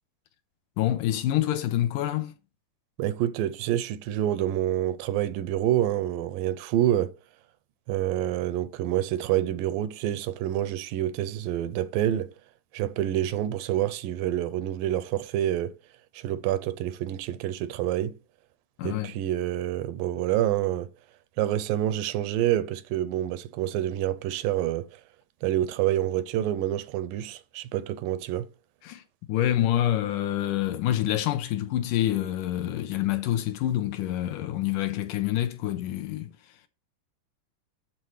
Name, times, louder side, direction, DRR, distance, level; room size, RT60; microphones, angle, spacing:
voice 1, 0.8-2.3 18.8-19.1 28.8-29.0 29.3-36.3, left 13 dB, 80° left, 2.0 m, -27 dB
voice 2, 3.0-7.1 7.9-12.3 12.7-15.7 16.1-18.2 18.8-20.9 21.4-25.0 25.4-28.5, right 12 dB, 85° right, 2.3 m, -27 dB
12.5 x 4.2 x 3.2 m
omnidirectional pair, 3.9 m